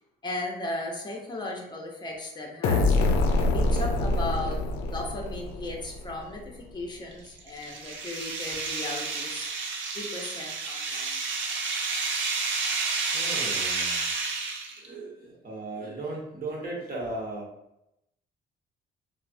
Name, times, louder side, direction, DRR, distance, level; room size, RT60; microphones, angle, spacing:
voice 1, 0.2-3.0 3.5-4.6 4.8-9.5 9.9-11.2, left 2 dB, 20° left, 0 dB, 0.6 m, -36 dB
sound 1, 2.6-6.3, left 2 dB, 90° left, 0.4 m, -25 dB
voice 2, 3.6-4.2 12.6-12.7 13.1-14.1 14.8-17.5, right 2 dB, 45° right, -3 dB, 1.0 m, -37 dB
sound 2, 7.1-14.9, right 4 dB, 70° right, 0.5 m, -30 dB
3.0 x 2.0 x 2.5 m, 0.83 s
cardioid pair, 90°, 20 cm